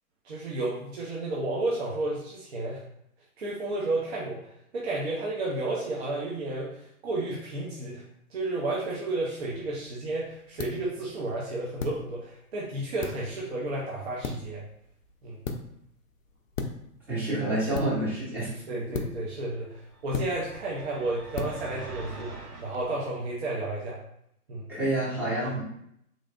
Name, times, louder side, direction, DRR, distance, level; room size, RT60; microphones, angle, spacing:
voice 1, 0.2-2.8 3.4-4.4 4.7-8.0 8.3-14.6 15.2-15.4 18.7-24.0 24.5-24.7 25.4-25.5, right 2 dB, 45° right, -5 dB, 0.8 m, -32 dB
sound 1, 9.4-22.9, left 4 dB, 60° left, 0.6 m, -40 dB
voice 2, 17.1-18.5 24.7-25.6, right 1 dB, 5° right, -10 dB, 0.6 m, -28 dB
sound 2, 19.9-22.8, right 3 dB, 85° right, 0.9 m, -42 dB
3.8 x 3.2 x 2.4 m, 0.74 s
figure-of-eight pair, 125°, 45 cm